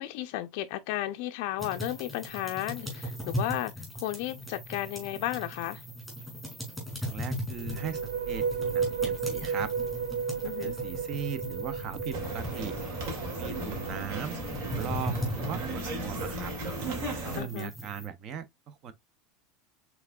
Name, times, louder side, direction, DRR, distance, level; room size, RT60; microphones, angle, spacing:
voice 1, 0.0-5.8 10.4-10.7 17.4-17.7, left 14 dB, 60° left, 0.4 m, -34 dB
sound 1, 1.6-18.1, equal, 5° right, 2.2 m, -39 dB
voice 2, 7.0-9.7 10.4-12.8 13.4-16.5 17.2-18.9, right 7 dB, 35° right, 0.6 m, -39 dB
sound 2, 7.5-15.1, right 6 dB, 75° right, 0.5 m, -34 dB
sound 3, 12.1-17.4, right 2 dB, 60° right, 2.1 m, -36 dB
5.7 x 3.4 x 2.3 m
supercardioid pair, 165°, 0 cm